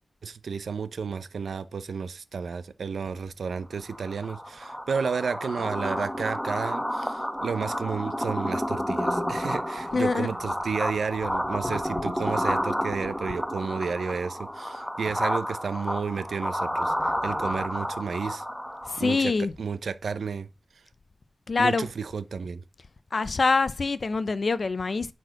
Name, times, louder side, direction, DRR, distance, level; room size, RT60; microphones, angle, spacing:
voice 1, 0.2-18.4 19.0-19.3 19.6-20.5 21.6-22.6, right 5 dB, 90° right, 0.7 m, -32 dB
sound 1, 3.8-19.2, equal, 5° left, 1.1 m, -30 dB
voice 2, 9.9-10.3 18.9-19.5 21.5-21.9 23.1-25.1, left 4 dB, 55° left, 0.8 m, -25 dB
10.5 x 4.6 x 5.8 m
wide cardioid pair, 80°, 0 cm